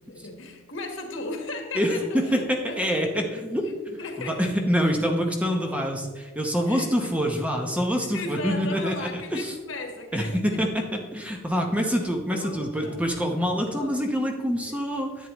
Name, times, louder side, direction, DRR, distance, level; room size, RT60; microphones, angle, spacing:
voice 1, 0.0-4.4 4.9-5.1 6.7-6.9 8.0-10.6 12.3-13.0 13.7-14.0 14.6-14.8, left 2 dB, 65° left, 3 dB, 1.4 m, -37 dB
voice 2, 1.7-3.6 4.2-9.5 10.1-15.3, equal, 5° right, 2 dB, 0.8 m, -26 dB
11.0 x 8.5 x 3.0 m, 1.3 s
head